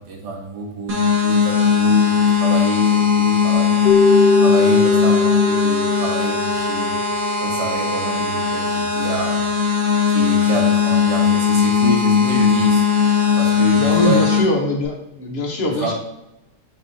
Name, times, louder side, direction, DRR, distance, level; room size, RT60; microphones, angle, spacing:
voice 1, 0.1-3.8 4.3-7.0 7.4-9.4 10.1-12.8 13.4-14.2 15.7-15.9, right 2 dB, 80° right, 1 dB, 1.5 m, -27 dB
sound 1, 0.9-14.4, left 6 dB, 60° right, 1.5 m, -18 dB
Keyboard (musical), 3.8-7.1, left 2 dB, 80° left, 1.2 m, -19 dB
voice 2, 13.8-15.9, left 1 dB, 55° left, 1 dB, 0.7 m, -22 dB
4.5 x 3.8 x 2.6 m, 0.88 s
omnidirectional pair, 1.8 m